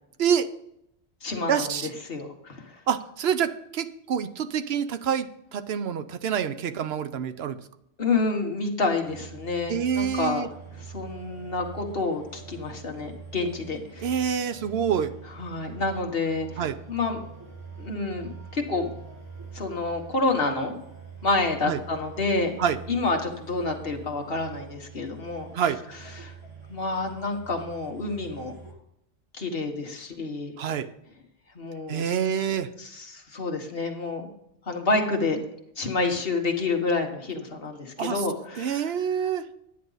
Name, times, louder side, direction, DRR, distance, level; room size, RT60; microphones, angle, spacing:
voice 1, 0.2-0.5 1.5-1.9 2.9-7.6 9.7-10.5 14.0-15.1 16.6-16.7 21.7-21.8 22.6-22.8 25.5-25.8 30.6-30.9 31.9-32.7 38.0-38.2 38.6-39.4, right 8 dB, 65° right, 11 dB, 0.9 m, -27 dB
voice 2, 1.2-2.8 7.2-7.3 8.0-14.1 15.3-16.6 16.9-17.2 17.8-18.9 19.5-20.8 21.2-22.6 22.9-25.5 26.2-26.3 26.7-28.6 29.3-30.5 31.5-32.2 32.8-34.3 34.7-35.4 35.8-38.9, left 3 dB, 55° left, 3 dB, 1.6 m, -28 dB
sound 1, 9.0-28.7, right 5 dB, 85° right, 2.7 m, -44 dB
10.0 x 9.5 x 4.0 m, 0.77 s
omnidirectional pair, 1.2 m